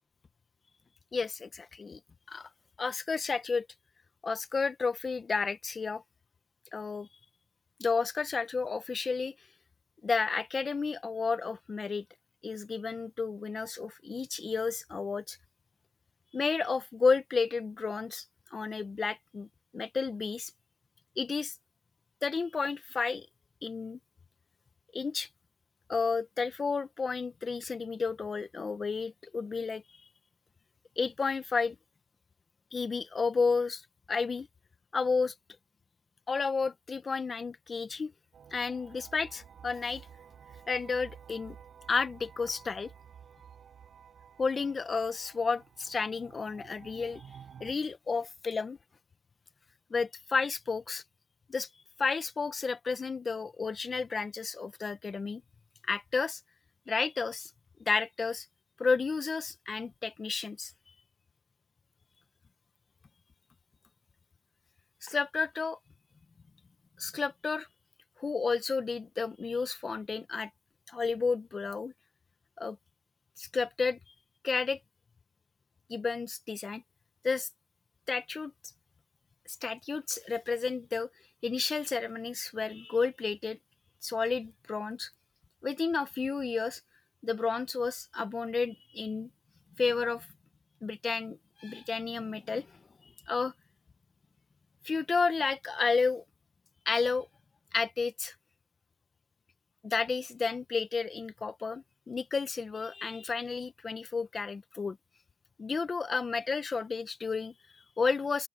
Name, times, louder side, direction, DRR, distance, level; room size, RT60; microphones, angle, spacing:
voice 1, 1.1-2.0 2.3-2.5 2.8-3.7 4.2-6.0 6.7-7.1 7.8-9.3 10.0-12.0 12.4-15.4 16.3-18.2 18.5-19.5 19.7-20.5 21.2-21.5 22.2-23.3 23.6-24.0 24.9-25.3 25.9-29.8 31.0-31.8 32.7-33.8 34.1-34.5 34.9-35.3 36.3-38.1 38.5-40.0 40.7-41.6 41.9-42.9 44.4-47.2 47.6-48.8 49.9-51.0 51.5-51.7 52.0-55.4 55.9-56.4 56.9-57.5 57.9-58.5 58.8-60.7 65.0-65.8 67.0-67.7 68.2-70.5 70.9-71.9 72.6-72.8 73.4-74.0 74.4-74.8 75.9-76.8 77.2-77.5 78.1-78.5 79.6-81.1 81.4-83.6 84.0-85.1 85.6-86.8 87.2-89.3 89.8-90.3 90.8-92.7 93.3-93.5 94.8-96.2 96.9-97.3 97.7-98.3 99.8-105.0 105.6-108.5, left 4 dB, 30° left, 0.9 m, -31 dB
sound 1, 38.3-47.7, right 8 dB, 50° right, 7.6 m, -53 dB
open air
cardioid pair, 150°, 0 cm